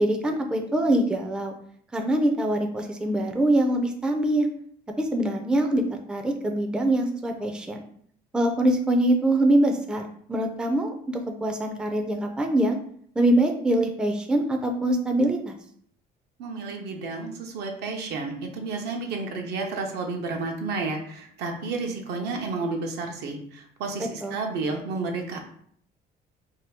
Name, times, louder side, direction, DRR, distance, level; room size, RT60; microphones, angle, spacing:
voice 1, 0.0-1.5 1.9-4.5 5.0-5.8 6.1-7.8 8.3-10.0 10.3-12.8 13.2-15.6 24.2-24.4, right 1 dB, 5° right, 4 dB, 0.4 m, -23 dB
voice 2, 16.4-25.4, right 3 dB, 75° right, 3 dB, 0.7 m, -31 dB
2.8 x 2.3 x 3.4 m, 0.62 s
cardioid pair, 110°, 17 cm